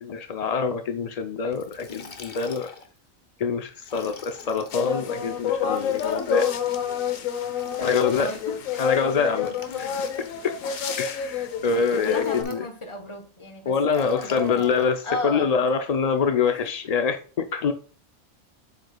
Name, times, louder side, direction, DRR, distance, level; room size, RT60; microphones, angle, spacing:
voice 1, 0.0-2.7 3.4-6.5 7.8-8.3 8.8-9.5 9.8-9.9 11.0-12.7 13.7-17.7, left 5 dB, 70° left, 0.3 m, -25 dB
Liquid, 1.5-3.0 3.8-4.9 5.7-6.6 7.5-8.6 9.4-10.6 11.6-12.7 13.9-14.9, left 5 dB, 50° left, 1.0 m, -44 dB
sound 1, 4.7-12.4, left 8 dB, 90° left, 1.2 m, -28 dB
voice 2, 7.6-9.1 9.7-10.0 12.1-14.7 15.0-15.5 16.4-16.5, left 2 dB, 25° left, 1.0 m, -35 dB
7.8 x 6.7 x 2.2 m
omnidirectional pair, 1.4 m